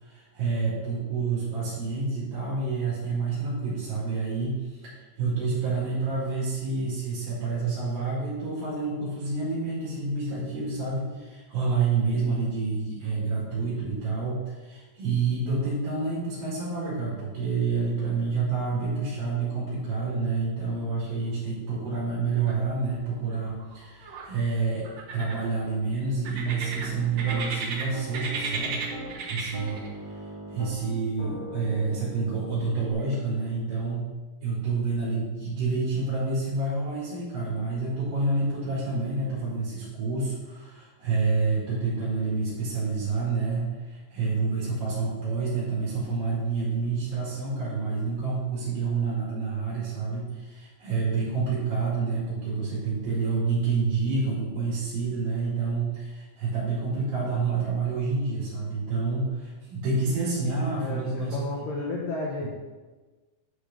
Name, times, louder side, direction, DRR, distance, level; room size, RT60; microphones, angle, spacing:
voice 1, 0.0-28.7 29.2-29.8 30.1-30.2 30.5-34.1 34.4-61.4 61.6-61.9, right 4 dB, 55° right, -9 dB, 3.9 m, -28 dB
sound 1, 22.5-23.0 23.3-24.3 24.8-25.7 26.2-27.8 28.1-29.9, right 4 dB, 75° right, 1.5 m, -34 dB
Piano, 26.4-27.4 27.9-29.2 29.5-32.9, right 1 dB, 50° left, 0.4 m, -39 dB
voice 2, 60.8-62.5, left 3 dB, 75° left, -4 dB, 2.1 m, -32 dB
10.0 x 5.0 x 5.4 m, 1.3 s
omnidirectional pair, 5.3 m